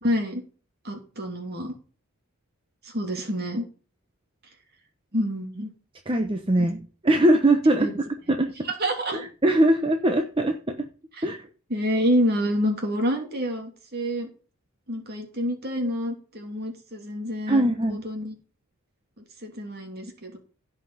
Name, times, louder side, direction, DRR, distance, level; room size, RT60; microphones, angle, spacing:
voice 1, 0.0-0.4 0.8-1.7 2.8-3.6 5.1-5.7 6.6-6.7 7.8-7.9 8.6-9.2 11.2-11.3 11.7-14.3 14.9-17.6 17.9-18.3 19.4-20.4, equal, 45° right, 3 dB, 3.0 m, -27 dB
voice 2, 6.1-6.8 7.0-7.9 8.3-8.7 9.1-10.9 11.2-11.4 17.5-18.1, right 1 dB, 25° right, 5 dB, 0.9 m, -21 dB
16.0 x 5.8 x 5.6 m, 0.38 s
head